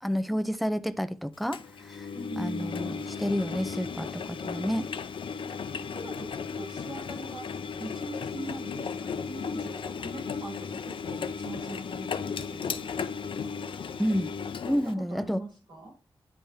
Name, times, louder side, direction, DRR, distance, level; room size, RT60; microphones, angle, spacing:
voice 1, 0.0-2.1 2.4-5.0 14.0-14.3 14.6-15.4, equal, ahead, 0.4 m, -30 dB
Engine, 1.5-14.9, left 6 dB, 80° left, 0.5 m, -35 dB
voice 2, 2.1-2.8 5.7-7.5 7.8-12.8 14.7-15.9, right 1 dB, 65° right, 3.2 m, -42 dB
10.0 x 3.5 x 2.7 m
wide cardioid pair, 155°, 9 cm